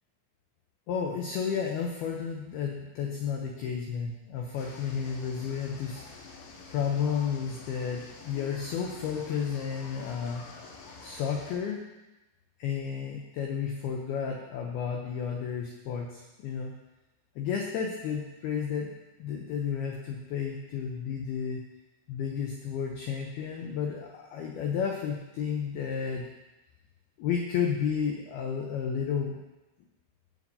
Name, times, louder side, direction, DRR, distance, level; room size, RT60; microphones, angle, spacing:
voice 1, 0.9-6.0 6.7-10.5 11.0-11.8 12.6-16.7 17.4-21.6 22.1-26.3 27.2-29.4, left 7 dB, 90° left, 0 dB, 2.2 m, -32 dB
sound 1, 4.6-11.6, left 4 dB, 75° left, 3.6 m, -47 dB
15.5 x 7.3 x 2.8 m, 1.0 s
omnidirectional pair, 5.6 m